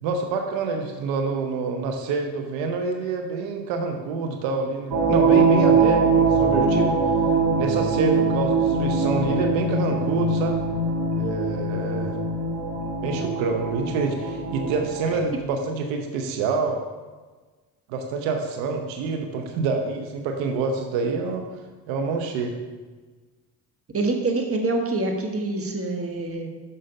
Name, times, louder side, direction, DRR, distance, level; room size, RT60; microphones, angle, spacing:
voice 1, 0.0-6.9 7.6-10.6 11.2-12.2 13.0-16.8 17.9-21.4 21.9-22.6, right 4 dB, 80° right, 4 dB, 0.9 m, -27 dB
sound 1, 4.9-15.2, right 4 dB, 60° right, 1.8 m, -22 dB
voice 2, 23.9-26.5, right 2 dB, 30° right, 3 dB, 1.4 m, -25 dB
6.6 x 5.4 x 5.3 m, 1.3 s
supercardioid pair, 70°, 44 cm